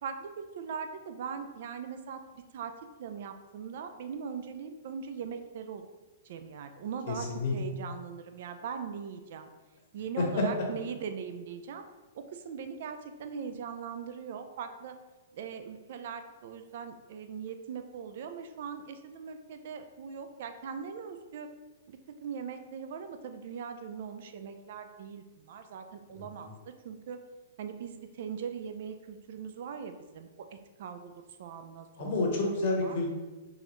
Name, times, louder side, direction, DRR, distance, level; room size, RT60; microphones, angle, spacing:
voice 1, 0.0-2.2 2.5-2.7 3.0-5.8 6.2-9.5 9.9-11.8 12.1-15.0 15.3-21.5 21.9-27.2 27.6-31.1 31.4-32.1 32.4-32.5 32.8-33.0, right 6 dB, 60° right, 8 dB, 0.4 m, -40 dB
voice 2, 7.1-7.5 26.1-26.2 32.0-33.1, left 2 dB, 55° left, 0 dB, 1.0 m, -29 dB
3.8 x 2.5 x 3.0 m, 1.2 s
hypercardioid pair, 135°, 0 cm